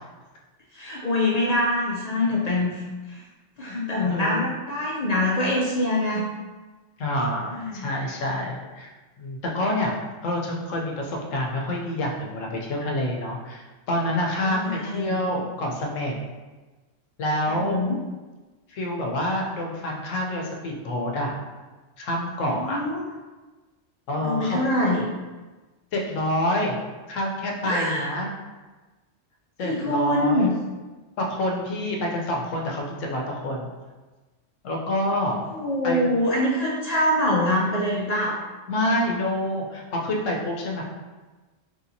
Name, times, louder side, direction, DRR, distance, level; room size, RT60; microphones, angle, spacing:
voice 1, 0.7-2.8 3.1-3.2 3.6-6.2 7.5-7.9 14.4-15.2 17.5-18.0 22.6-23.0 24.2-25.0 27.6-28.1 29.6-30.5 35.5-38.4, left 1 dB, 65° left, -5 dB, 0.4 m, -24 dB
voice 2, 4.0-4.4 7.0-8.9 9.2-10.0 10.2-16.1 17.2-17.8 18.7-21.4 22.0-22.8 24.1-24.6 25.9-26.8 27.1-28.3 29.6-30.5 31.2-33.7 34.6-35.4 35.8-36.1 38.7-40.8, left 1 dB, 85° left, 0 dB, 1.0 m, -27 dB
3.3 x 2.8 x 2.6 m, 1.2 s
omnidirectional pair, 1.3 m